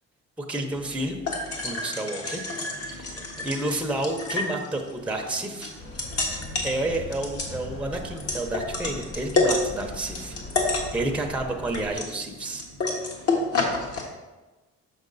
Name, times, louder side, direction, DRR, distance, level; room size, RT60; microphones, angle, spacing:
voice 1, 0.4-1.2 1.6-2.5 2.7-5.7 6.6-10.4 10.6-12.6, right 2 dB, 5° right, 2 dB, 0.8 m, -30 dB
sound 1, 0.7-14.0, left 3 dB, 50° left, 1.7 m, -30 dB
sound 2, 5.8-11.9, left 2 dB, 35° left, 1.7 m, -40 dB
6.7 x 5.7 x 4.0 m, 1.2 s
cardioid pair, 90°, 30 cm